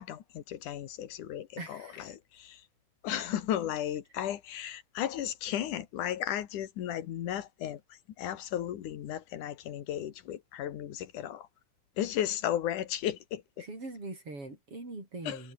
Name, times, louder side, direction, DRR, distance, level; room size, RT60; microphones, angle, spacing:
voice 1, 0.0-2.6 3.0-11.5 12.0-13.7 15.3-15.4, left 11 dB, 85° left, 3.0 m, -35 dB
voice 2, 1.6-2.2 13.6-15.5, right 2 dB, 45° right, 9.0 m, -42 dB
omnidirectional pair, 3.5 m